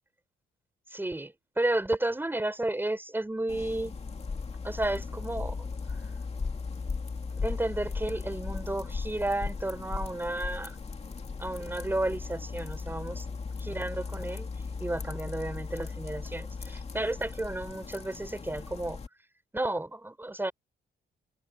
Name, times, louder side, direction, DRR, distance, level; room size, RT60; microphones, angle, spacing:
voice 1, 0.9-3.9 4.6-5.6 7.4-10.8 11.4-13.3 13.6-14.5 14.8-19.0 19.5-20.5, right 1 dB, 10° right, 4.3 m, -32 dB
sound 1, 3.5-19.1, left 4 dB, 35° left, 2.6 m, -37 dB
cardioid pair, 115°, 19 cm